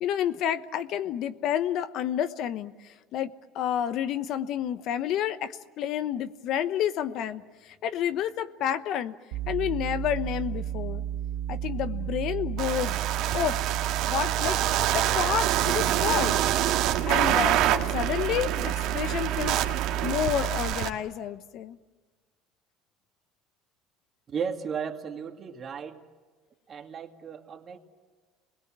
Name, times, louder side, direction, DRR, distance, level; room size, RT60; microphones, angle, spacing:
voice 1, 0.0-9.1 9.5-11.0 11.5-13.0 13.3-13.6 14.1-14.6 14.9-16.4 17.1-19.6 20.0-21.8, left 10 dB, 60° left, 11 dB, 1.1 m, -30 dB
sound 1, 9.3-20.7, right 10 dB, 85° right, 1.7 m, -33 dB
sound 2, 12.6-20.9, right 12 dB, 65° right, 1.9 m, -26 dB
voice 2, 24.3-26.0 26.7-27.8, right 6 dB, 35° right, 4 dB, 2.3 m, -35 dB
29.0 x 21.5 x 7.5 m, 1.4 s
supercardioid pair, 115°, 0 cm